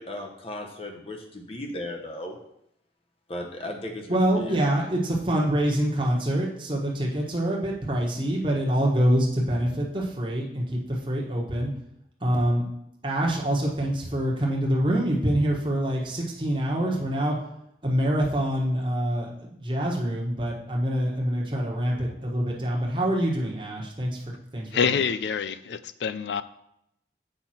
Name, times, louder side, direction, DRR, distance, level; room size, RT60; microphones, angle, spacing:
voice 1, 0.0-2.3 3.3-4.6, left 1 dB, 35° left, 0.9 m, -36 dB
voice 2, 4.1-11.7 12.2-12.6 13.0-17.4 17.8-24.2 24.5-24.9, right 1 dB, 30° right, 1.3 m, -25 dB
voice 3, 24.7-26.4, left 6 dB, 80° left, 0.4 m, -26 dB
7.7 x 5.7 x 4.3 m
head